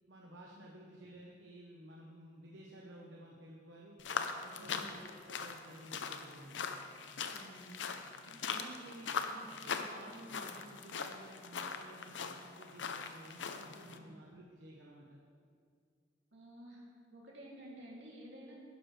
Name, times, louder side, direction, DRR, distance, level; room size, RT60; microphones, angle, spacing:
voice 1, 0.1-4.0 4.4-6.7 8.2-15.2, right 1 dB, 90° right, -2 dB, 1.1 m, -53 dB
sound 1, 4.0-14.0, left 5 dB, 80° left, 0.6 m, -41 dB
voice 2, 7.2-7.8 14.0-14.1 16.3-16.8 17.1-18.6, right 1 dB, 75° right, -4 dB, 2.6 m, -52 dB
11.5 x 11.0 x 3.3 m, 2.2 s
head